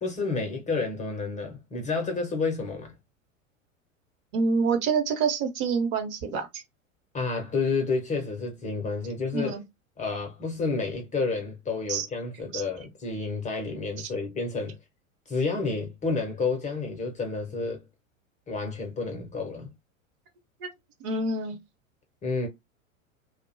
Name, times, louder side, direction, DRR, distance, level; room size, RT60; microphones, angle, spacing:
voice 1, 0.0-2.9 7.1-9.6 10.0-14.8 15.3-17.8 18.5-19.7 22.2-22.5, left 4 dB, 20° left, 0.5 m, -30 dB
voice 2, 4.3-6.6 9.3-9.6 11.9-12.1 12.5-12.6 14.0-14.1 20.6-20.7 21.0-21.6, right 4 dB, 45° right, 0.8 m, -27 dB
2.3 x 2.1 x 2.6 m
figure-of-eight pair, 85°, 40 cm